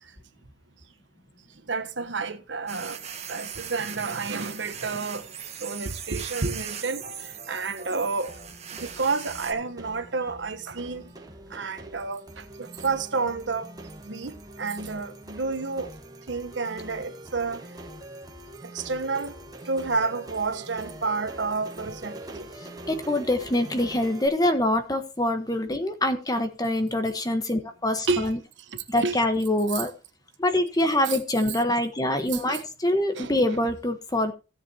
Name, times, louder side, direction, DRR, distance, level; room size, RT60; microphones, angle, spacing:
voice 1, 1.7-3.0 3.3-5.3 5.6-8.3 8.7-11.0 11.5-13.7 14.0-15.9 16.3-17.7 18.7-19.3 19.6-22.5 28.1-28.4 28.7-29.2 29.7-29.8 31.1-31.2 32.3-32.6 33.1-33.6, right 4 dB, 70° right, 1.2 m, -30 dB
sound 1, 2.7-9.5, right 8 dB, 35° right, 1.4 m, -39 dB
sound 2, 8.3-24.3, right 1 dB, 20° right, 1.6 m, -44 dB
voice 2, 22.9-28.4 28.9-29.9 30.4-34.3, left 1 dB, 20° left, 1.3 m, -25 dB
16.5 x 7.4 x 3.0 m
head